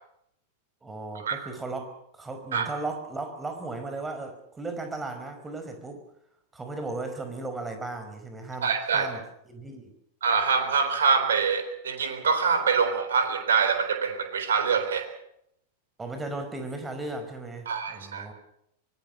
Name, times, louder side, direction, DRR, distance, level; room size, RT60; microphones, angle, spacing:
voice 1, 0.8-6.1 6.5-9.9 16.0-18.3, right 2 dB, 10° right, 6 dB, 5.0 m, -36 dB
voice 2, 8.6-9.1 10.2-15.1 17.7-18.3, right 5 dB, 65° right, 8 dB, 3.9 m, -25 dB
24.5 x 20.5 x 6.6 m, 0.75 s
figure-of-eight pair, 90°, 0 cm